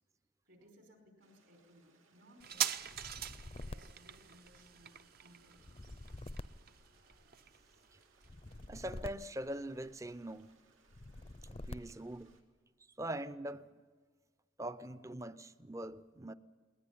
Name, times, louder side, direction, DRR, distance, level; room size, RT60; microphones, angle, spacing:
voice 1, 0.4-2.9 3.6-4.9 5.2-5.9 14.9-15.0, equal, 65° right, 5.1 m, -63 dB
Stream, 1.2-12.4, right 4 dB, 90° right, 2.7 m, -70 dB
sound 1, 2.4-9.5 9.8-9.9, right 10 dB, 50° right, 0.7 m, -43 dB
sound 2, 2.9-4.9 5.6-7.5 8.2-10.1 10.9-12.2, left 1 dB, 30° left, 0.6 m, -48 dB
voice 2, 8.7-10.5 11.5-12.3 13.0-13.7 14.6-16.3, right 1 dB, 15° right, 0.6 m, -42 dB
20.0 x 19.0 x 9.9 m
head